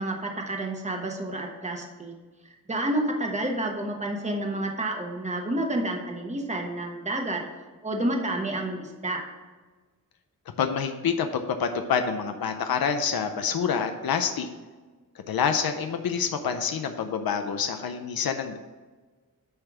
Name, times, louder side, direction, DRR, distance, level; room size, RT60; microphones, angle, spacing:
voice 1, 0.0-2.1 2.7-7.4 7.8-9.2, right 1 dB, 20° right, 2 dB, 1.1 m, -29 dB
voice 2, 10.6-14.5 15.2-18.6, left 6 dB, 90° left, 6 dB, 0.6 m, -27 dB
9.9 x 3.4 x 6.0 m, 1.3 s
wide cardioid pair, 135°, 35 cm